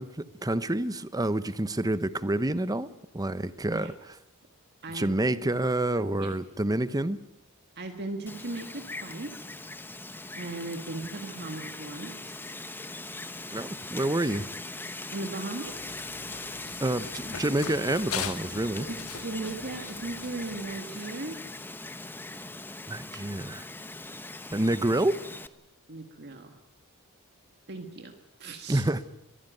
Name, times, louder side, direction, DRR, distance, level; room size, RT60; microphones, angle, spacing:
voice 1, 0.0-2.9 3.1-3.9 4.9-7.2 13.5-14.5 16.8-18.9 22.9-23.6 24.5-25.2 28.7-29.0, right 1 dB, 15° right, 14 dB, 0.9 m, -28 dB
voice 2, 4.8-5.2 6.0-6.3 7.8-9.4 10.4-12.4 15.1-15.7 18.8-21.5 25.9-26.6 27.7-28.8, right 2 dB, 50° right, 4 dB, 1.7 m, -37 dB
Wind, 8.3-25.5, left 2 dB, 10° left, 0.8 m, -40 dB
Run, 15.6-20.8, left 7 dB, 75° left, 1.4 m, -41 dB
23.0 x 15.5 x 9.2 m, 0.90 s
head